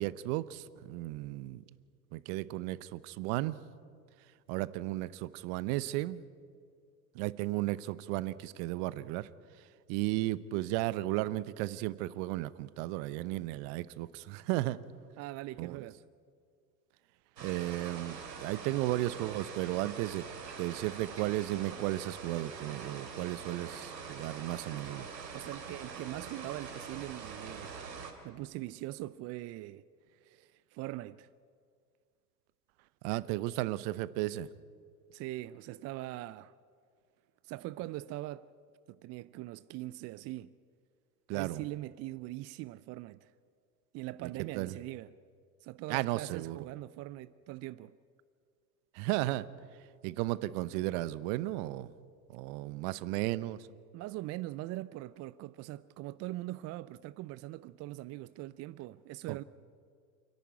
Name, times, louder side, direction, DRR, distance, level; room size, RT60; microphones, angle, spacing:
voice 1, 0.0-1.6 2.1-3.6 4.5-6.2 7.1-9.3 9.9-14.8 15.6-15.9 17.4-20.3 20.6-25.1 33.0-34.5 41.3-41.6 44.2-44.7 45.9-46.6 48.9-49.5 50.0-51.9 52.3-53.6 59.3-59.4, right 17 dB, 55° right, 1.0 m, -34 dB
voice 2, 15.2-16.0 25.3-27.8 28.2-29.8 30.1-31.3 35.1-36.5 37.4-38.5 38.9-40.5 41.3-43.3 43.9-45.1 45.6-47.9 53.9-59.4, right 17 dB, 35° right, 0.4 m, -42 dB
sound 1, 17.4-28.1, right 5 dB, 85° right, 2.9 m, -44 dB
28.5 x 11.0 x 9.6 m
hypercardioid pair, 85°, 50 cm